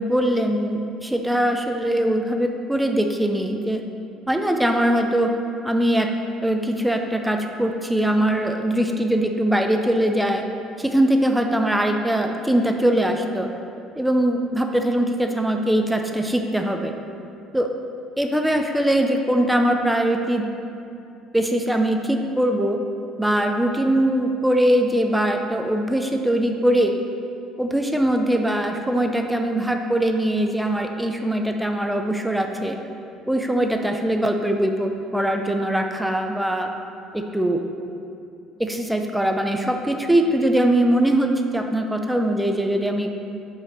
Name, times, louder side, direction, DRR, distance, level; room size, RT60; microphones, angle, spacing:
voice 1, 0.0-3.8 4.3-5.3 5.6-6.1 6.4-10.4 10.8-13.5 14.0-16.9 17.5-17.7 18.2-20.5 21.3-22.8 23.2-26.9 27.6-32.8 33.3-36.7 37.1-37.6 38.6-43.1, right 1 dB, 5° right, 4 dB, 0.5 m, -21 dB
5.8 x 4.7 x 5.8 m, 2.6 s
cardioid pair, 110°, 0 cm